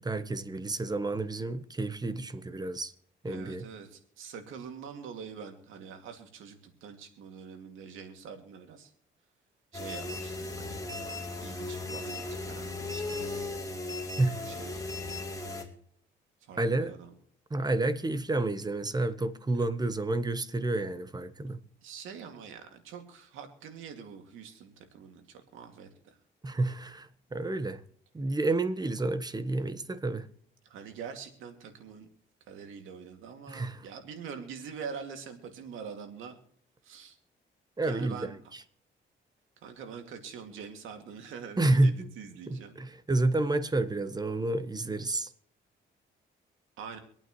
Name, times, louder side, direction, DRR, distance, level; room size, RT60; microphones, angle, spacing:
voice 1, 0.0-2.9 3.2-3.6 14.2-14.4 16.6-16.9 17.5-21.6 26.4-27.8 28.1-30.3 33.5-33.8 37.8-38.3 41.6-42.1 42.5-45.3, right 2 dB, 20° right, 1.1 m, -29 dB
voice 2, 3.3-8.9 9.7-13.4 14.4-14.8 16.4-17.1 19.5-19.6 21.5-21.6 21.8-26.2 30.6-32.1 32.5-36.4 36.8-37.2 37.8-38.5 39.6-42.8 46.8-47.0, right 6 dB, 85° right, 2.4 m, -45 dB
sound 1, 9.7-15.6, left 2 dB, 15° left, 3.1 m, -37 dB
26.0 x 8.9 x 3.1 m
cardioid pair, 90°, 20 cm